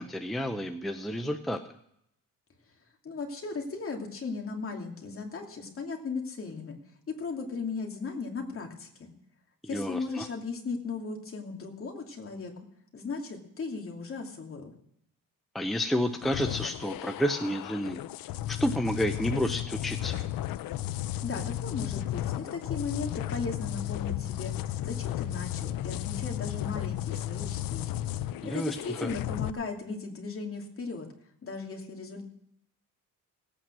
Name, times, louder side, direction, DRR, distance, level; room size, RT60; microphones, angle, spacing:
voice 1, 0.0-1.6 9.7-10.3 15.5-18.0 18.5-20.2 28.4-29.1, equal, ahead, 5 dB, 0.7 m, -30 dB
voice 2, 3.0-6.8 7.1-9.1 9.7-12.5 12.9-14.7 21.2-24.5 24.8-28.0 28.4-31.1 31.4-32.2, left 4 dB, 40° left, 1 dB, 2.7 m, -37 dB
sound 1, 16.2-29.5, left 13 dB, 80° left, 0.6 m, -34 dB
18.0 x 8.8 x 6.2 m, 0.74 s
cardioid pair, 135°, 34 cm